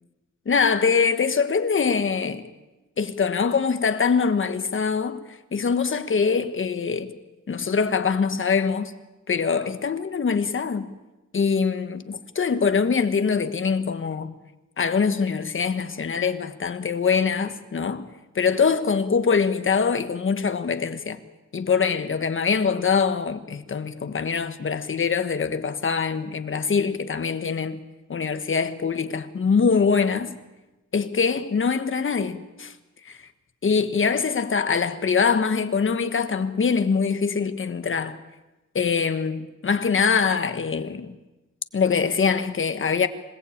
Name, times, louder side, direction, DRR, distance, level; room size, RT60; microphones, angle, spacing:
voice 1, 0.4-2.5 3.0-7.1 7.5-8.9 9.3-10.9 11.3-14.3 14.8-18.1 18.3-21.2 21.5-27.8 28.1-30.4 30.9-32.7 33.0-33.2 33.6-38.2 38.7-41.2 41.7-43.1, left 5 dB, 45° left, 1.4 m, -23 dB
26.0 x 18.5 x 8.7 m
wide cardioid pair, 155°, 29 cm